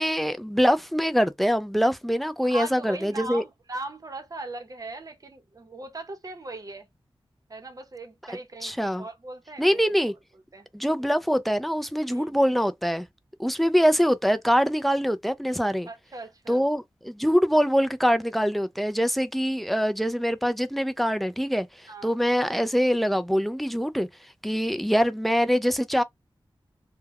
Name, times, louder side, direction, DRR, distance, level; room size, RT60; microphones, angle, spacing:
voice 1, 0.0-3.4 8.6-9.0 9.6-10.1 10.7-13.1 13.4-15.9 16.5-21.7 22.0-24.1 24.4-26.0, equal, ahead, 0.3 m, -24 dB
voice 2, 2.4-6.9 7.5-9.8 10.5-10.7 11.0-11.1 12.1-12.3 15.8-16.6 21.9-22.2, right 2 dB, 40° right, 0.7 m, -39 dB
2.2 x 2.1 x 3.4 m
wide cardioid pair, 100°, 9 cm